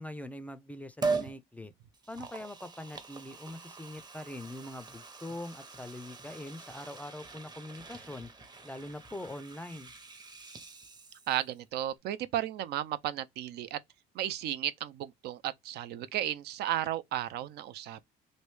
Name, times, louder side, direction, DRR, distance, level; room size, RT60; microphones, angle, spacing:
voice 1, 0.0-1.7 2.1-8.3 8.6-9.9, left 1 dB, 10° left, 0.4 m, -43 dB
Liquid, 1.0-1.4 1.9-11.6 11.9-12.0, right 4 dB, 25° right, 0.8 m, -41 dB
voice 2, 11.3-13.8 14.1-18.0, right 12 dB, 75° right, 0.5 m, -34 dB
3.1 x 2.6 x 3.2 m
cardioid pair, 110°, 17 cm